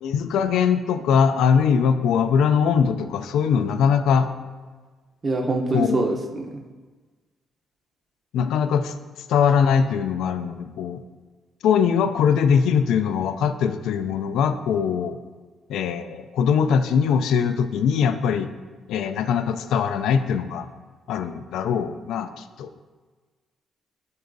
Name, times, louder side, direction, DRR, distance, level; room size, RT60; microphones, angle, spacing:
voice 1, 0.0-4.3 5.7-6.3 8.3-8.9 9.3-11.0 11.6-15.2 15.7-18.5 18.9-20.7 21.1-22.7, left 7 dB, 80° left, 9 dB, 0.3 m, -21 dB
voice 2, 5.2-6.5, right 2 dB, 35° right, 3 dB, 0.7 m, -24 dB
8.0 x 4.6 x 2.6 m, 1.4 s
cardioid pair, 90°, 0 cm